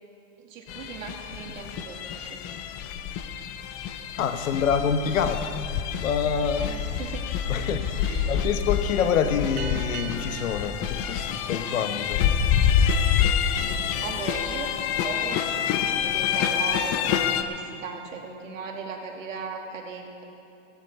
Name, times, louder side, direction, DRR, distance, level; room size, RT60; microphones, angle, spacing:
voice 1, 0.4-2.5 6.6-7.3 7.5-7.6 7.9-8.3 14.0-14.8 15.0-20.2, right 5 dB, 85° right, 1 dB, 2.3 m, -38 dB
sound 1, 0.7-17.4, left 8 dB, 35° left, 0.7 m, -27 dB
voice 2, 4.2-5.6 6.0-6.8 7.5-12.2, left 7 dB, 85° left, 9 dB, 1.1 m, -26 dB
sound 2, 9.6-12.5, right 9 dB, 55° right, 1.2 m, -42 dB
16.0 x 14.0 x 4.2 m, 2.6 s
hypercardioid pair, 125°, 38 cm